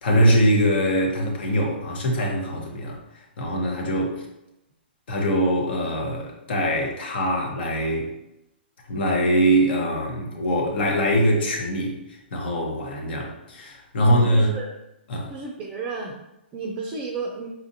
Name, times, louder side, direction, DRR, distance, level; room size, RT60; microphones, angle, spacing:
voice 1, 0.0-4.3 5.1-8.1 8.9-14.5 15.1-15.3, equal, 60° left, 0 dB, 0.9 m, -23 dB
voice 2, 14.0-14.8 15.3-16.2 16.5-17.5, right 3 dB, 25° right, -1 dB, 0.4 m, -32 dB
4.1 x 2.4 x 2.7 m, 0.88 s
hypercardioid pair, 135°, 6 cm